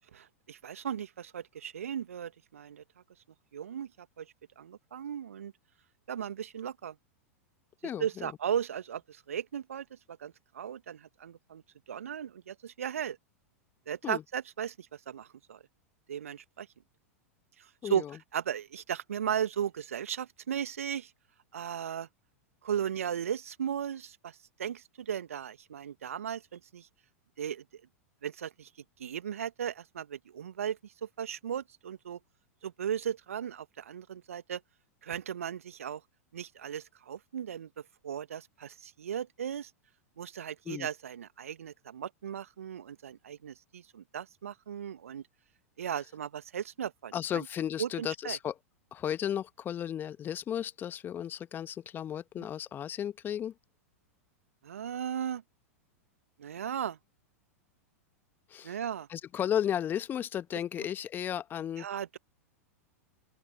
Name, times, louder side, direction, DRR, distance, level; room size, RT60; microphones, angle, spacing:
voice 1, 0.0-2.8 3.5-5.5 6.1-7.0 8.0-11.6 11.9-13.2 13.9-15.6 16.1-16.7 17.6-18.0 18.3-21.1 21.5-22.1 22.6-26.9 27.4-27.6 28.2-28.7 29.0-32.2 32.6-34.6 35.0-36.0 36.3-39.7 40.2-45.2 45.8-47.5 47.8-48.4 52.4-52.5 54.6-55.4 56.4-57.0 58.6-59.1 61.8-62.2, right 9 dB, 70° right, 2.0 m, -36 dB
voice 2, 7.8-8.3 14.0-14.2 17.8-18.2 40.7-40.9 47.1-48.5 48.9-53.5 58.5-58.8 59.1-61.9, left 10 dB, 25° left, 1.4 m, -34 dB
open air
figure-of-eight pair, 95°, 8 cm